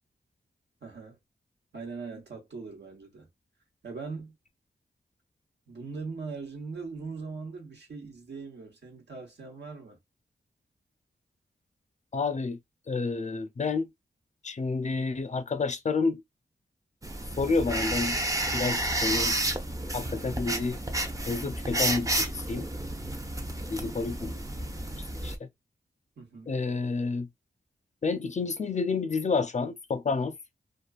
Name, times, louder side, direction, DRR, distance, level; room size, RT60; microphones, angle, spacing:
voice 1, 0.8-1.2 1.7-3.3 3.8-4.3 5.7-10.0 26.2-26.5, right 4 dB, 75° right, 1.1 m, -40 dB
voice 2, 12.1-12.6 12.9-13.9 14.4-16.2 17.4-18.2 18.5-19.3 19.9-20.8 21.3-22.7 23.7-24.4 25.2-25.5 26.5-27.3 28.0-30.3, left 4 dB, 40° left, 0.5 m, -29 dB
sound 1, 17.0-25.4, right 1 dB, 20° right, 0.6 m, -31 dB
2.4 x 2.4 x 2.3 m
cardioid pair, 55°, 18 cm